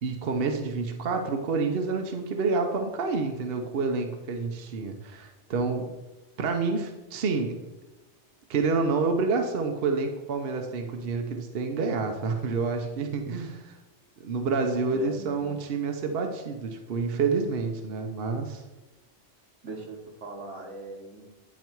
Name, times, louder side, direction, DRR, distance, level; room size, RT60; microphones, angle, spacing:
voice 1, 0.0-5.9 6.4-7.6 8.5-13.8 14.2-18.6, right 4 dB, 60° right, 4 dB, 0.9 m, -28 dB
voice 2, 14.9-15.5 19.6-21.2, right 2 dB, 85° right, 1 dB, 1.7 m, -40 dB
9.5 x 4.1 x 4.5 m, 1.1 s
omnidirectional pair, 1.2 m